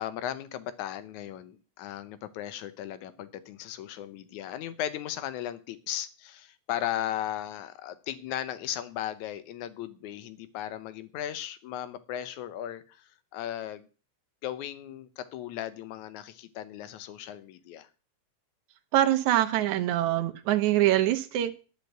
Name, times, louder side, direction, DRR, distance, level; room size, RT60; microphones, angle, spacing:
voice 1, 0.0-13.1 13.3-13.9 14.4-17.9, left 11 dB, 80° left, 13 dB, 2.2 m, -36 dB
voice 2, 18.9-21.6, right 13 dB, 75° right, 9 dB, 2.2 m, -24 dB
10.5 x 5.2 x 8.0 m, 0.36 s
omnidirectional pair, 3.5 m